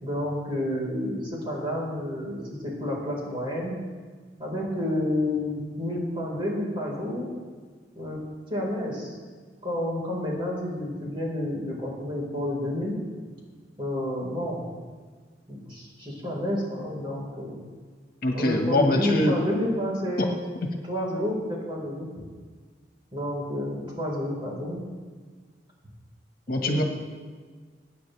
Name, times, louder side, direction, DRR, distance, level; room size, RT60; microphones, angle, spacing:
voice 1, 0.0-3.7 4.4-7.3 7.9-8.2 8.5-9.1 9.6-13.0 13.8-14.6 15.5-17.6 18.3-20.5 20.9-22.2 23.1-24.8 26.6-26.8, left 1 dB, 30° right, -4 dB, 4.4 m, -30 dB
voice 2, 18.2-19.3 20.2-20.3 26.5-26.8, left 1 dB, 55° left, 2 dB, 1.5 m, -23 dB
23.5 x 9.8 x 3.4 m, 1.6 s
head